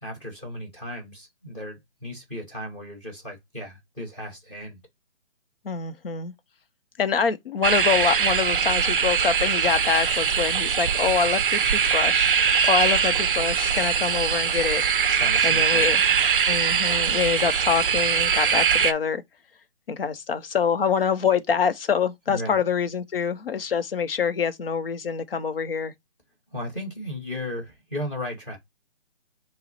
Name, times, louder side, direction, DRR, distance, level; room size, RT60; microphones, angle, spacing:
voice 1, 0.0-4.8 15.1-15.9 22.3-22.6 26.5-28.6, left 1 dB, 10° left, 0.9 m, -35 dB
voice 2, 5.6-6.3 7.0-14.8 15.4-16.0 16.5-19.2 19.9-25.9, left 6 dB, 55° left, 0.7 m, -25 dB
sound 1, 7.6-18.9, right 7 dB, 50° right, 0.4 m, -22 dB
5.5 x 2.0 x 4.0 m
hypercardioid pair, 165°, 34 cm